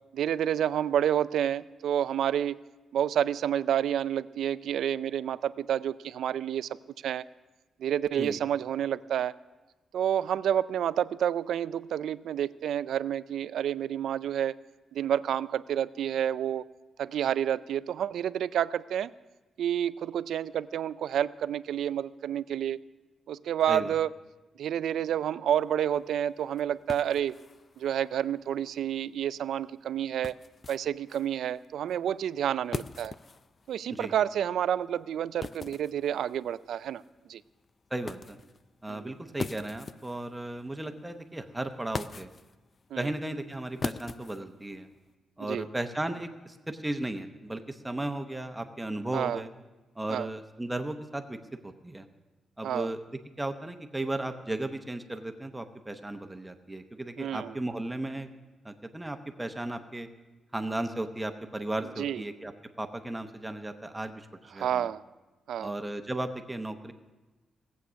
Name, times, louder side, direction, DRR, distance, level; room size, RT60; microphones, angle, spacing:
voice 1, 0.1-2.6 2.9-6.7 7.0-7.2 7.8-9.4 9.9-14.5 14.9-16.6 17.0-19.1 19.6-22.8 23.3-24.1 24.6-27.3 27.8-30.3 30.7-33.1 33.7-37.0 37.3-37.4 38.9-39.1 42.9-43.0 45.5-45.6 49.1-49.4 50.1-50.3 52.6-52.9 57.2-57.5 62.0-62.2 64.6-65.0 65.5-65.7, right 10 dB, 80° right, 17 dB, 0.3 m, -29 dB
sound 1, 25.5-45.1, left 4 dB, 35° left, 0.3 m, -44 dB
voice 2, 37.9-38.4 38.8-42.3 43.0-44.9 45.4-49.5 49.9-52.1 52.6-58.3 58.6-60.1 60.5-62.5 62.8-64.9 65.6-66.9, right 1 dB, 10° right, 7 dB, 0.8 m, -35 dB
17.5 x 8.2 x 6.2 m, 1.1 s
cardioid pair, 120°, 0 cm